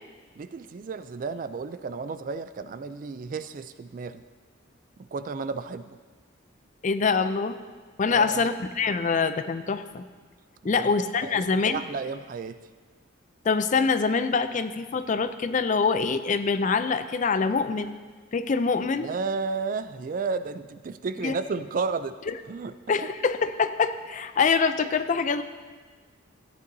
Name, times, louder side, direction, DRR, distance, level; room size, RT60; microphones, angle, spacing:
voice 1, 0.4-4.2 5.0-6.0 8.1-8.5 10.6-10.9 11.2-12.6 19.0-22.2 22.5-22.7, right 4 dB, 45° right, 12 dB, 0.3 m, -32 dB
voice 2, 6.8-7.6 8.0-10.1 10.6-11.8 13.4-18.0 18.3-19.1 21.2-21.3 22.3-22.4 22.9-25.4, left 5 dB, 40° left, 11 dB, 0.4 m, -25 dB
14.0 x 9.3 x 2.7 m, 1.5 s
head